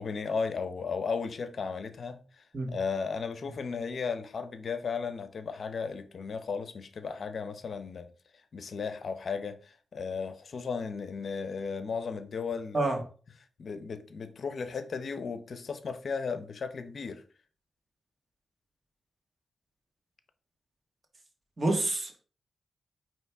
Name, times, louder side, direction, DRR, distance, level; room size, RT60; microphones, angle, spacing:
voice 1, 0.0-8.1 8.5-12.9 13.6-17.2, left 5 dB, 60° left, 0.7 m, -35 dB
voice 2, 21.6-22.2, right 2 dB, 40° right, 1.5 m, -28 dB
9.1 x 3.1 x 3.4 m
cardioid pair, 75°, 0 cm